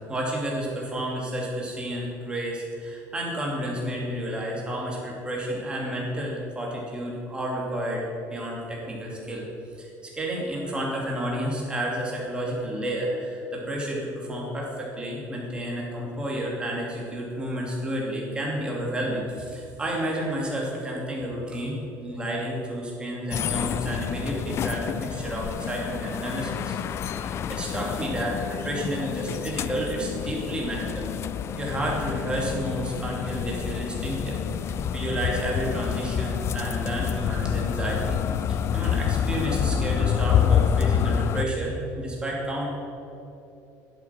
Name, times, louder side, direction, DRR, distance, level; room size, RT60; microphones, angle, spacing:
voice 1, 0.0-8.0 8.3-9.4 9.8-26.8 27.1-31.1 31.6-38.2 38.7-42.7, right 1 dB, 15° right, -3 dB, 3.0 m, -31 dB
sound 1, 23.3-41.5, left 8 dB, 40° left, 0.4 m, -28 dB
11.0 x 7.9 x 6.1 m, 2.8 s
cardioid pair, 120°, 7 cm